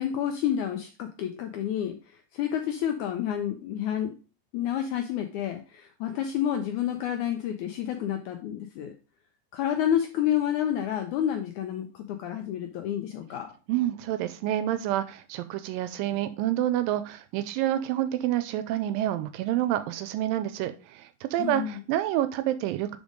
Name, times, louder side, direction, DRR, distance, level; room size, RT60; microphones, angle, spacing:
voice 1, 0.0-2.0 2.3-4.1 4.5-8.9 9.5-13.5 21.4-21.8, left 10 dB, 85° left, 5 dB, 1.7 m, -29 dB
voice 2, 13.7-23.0, right 13 dB, 80° right, 11 dB, 2.1 m, -28 dB
5.2 x 5.0 x 5.1 m, 0.34 s
omnidirectional pair, 4.2 m